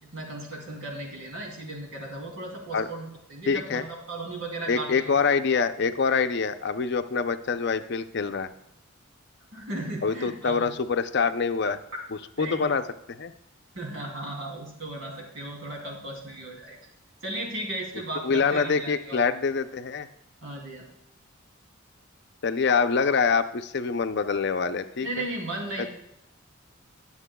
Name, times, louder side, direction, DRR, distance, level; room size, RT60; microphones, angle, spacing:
voice 1, 0.0-5.1 9.5-10.7 12.4-12.7 13.7-16.8 17.2-19.2 20.4-20.9 25.0-25.9, right 1 dB, 75° right, -1 dB, 2.9 m, -36 dB
voice 2, 3.5-3.8 4.7-8.5 10.0-11.8 12.4-13.3 18.2-20.1 22.4-25.1 25.8-25.9, left 5 dB, 55° left, 9 dB, 0.5 m, -25 dB
21.0 x 7.2 x 2.3 m, 0.82 s
head